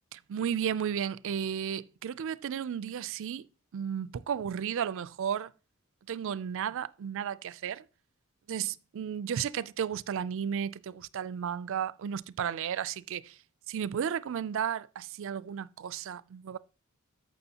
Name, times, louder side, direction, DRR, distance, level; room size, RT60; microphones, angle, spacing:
voice 1, 0.1-3.5 3.7-5.5 6.1-7.9 8.5-13.4 13.7-16.6, right 8 dB, 65° right, 0.4 m, -33 dB
14.0 x 5.9 x 2.9 m
head